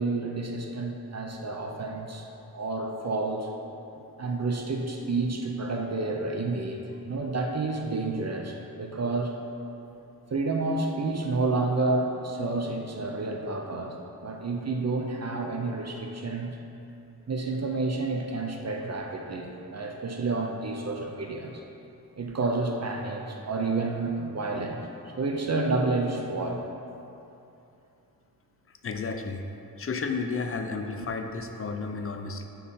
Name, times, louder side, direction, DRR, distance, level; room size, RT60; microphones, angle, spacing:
voice 1, 0.0-2.3 2.5-3.5 4.2-9.4 10.3-14.0 14.2-16.6 17.3-21.6 22.2-24.8 25.2-26.6, right 3 dB, 45° right, 2 dB, 0.6 m, -30 dB
voice 2, 28.8-29.4 29.8-32.5, left 4 dB, 35° left, 5 dB, 0.5 m, -32 dB
4.8 x 4.6 x 5.5 m, 2.8 s
wide cardioid pair, 80°, 37 cm